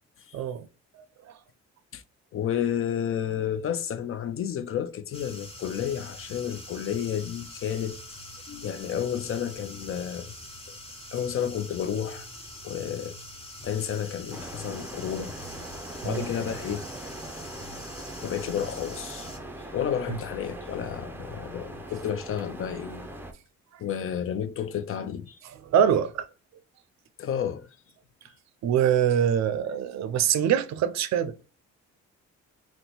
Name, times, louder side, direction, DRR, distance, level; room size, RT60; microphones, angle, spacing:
voice 1, 0.3-0.7 16.0-16.2 25.7-26.3 28.6-31.3, right 9 dB, 65° right, 0.5 m, -24 dB
voice 2, 2.3-8.0 8.5-10.3 11.1-12.3 12.6-13.1 13.6-15.4 16.0-16.8 18.2-19.3 19.7-23.1 23.8-25.4 27.2-27.7, left 9 dB, 45° left, 0.4 m, -31 dB
sound 1, 5.1-19.4, left 1 dB, 20° left, 1.1 m, -44 dB
sound 2, 14.3-23.3, right 1 dB, 5° right, 0.5 m, -41 dB
2.8 x 2.1 x 3.9 m
cardioid pair, 90°, 30 cm